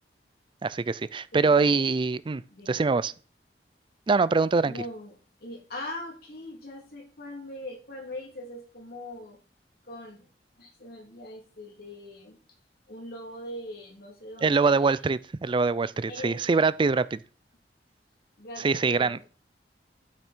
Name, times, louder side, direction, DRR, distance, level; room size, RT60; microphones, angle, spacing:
voice 1, 0.6-3.1 4.1-4.7 14.4-17.2 18.6-19.2, right 4 dB, 30° right, 0.4 m, -24 dB
voice 2, 1.3-1.8 2.5-2.8 4.6-5.1 5.4-9.4 9.8-10.3 10.6-12.4 12.9-14.9 16.1-16.6 18.4-19.3, left 1 dB, 60° left, 3.2 m, -41 dB
12.0 x 5.9 x 4.5 m
head